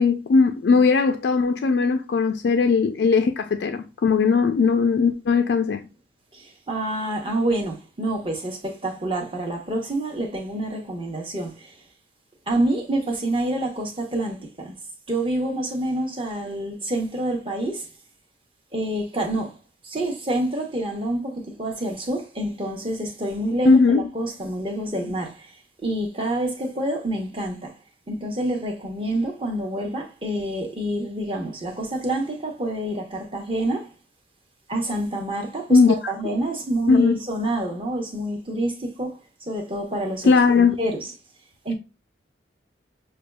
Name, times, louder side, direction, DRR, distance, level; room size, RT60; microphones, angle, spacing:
voice 1, 0.0-5.8 23.7-24.0 35.7-36.1 36.9-37.2 40.2-40.8, left 4 dB, 65° left, 0.3 m, -18 dB
voice 2, 6.3-11.8 12.5-14.7 15.1-17.9 18.7-19.6 19.8-27.8 28.1-33.9 34.7-41.1 41.6-41.7, right 1 dB, 30° right, 0.9 m, -27 dB
6.6 x 2.3 x 2.2 m
head